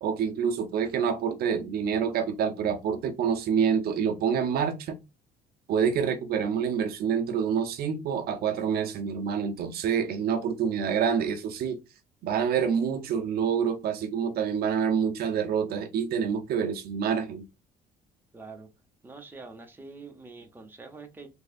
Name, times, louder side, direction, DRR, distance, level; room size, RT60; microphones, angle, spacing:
voice 1, 0.0-5.0 5.7-11.8 12.2-17.4, right 7 dB, 65° right, 0.7 m, -27 dB
voice 2, 18.3-18.7 19.0-21.3, right 3 dB, 10° right, 0.9 m, -45 dB
3.5 x 3.1 x 2.5 m
cardioid pair, 110°, 17 cm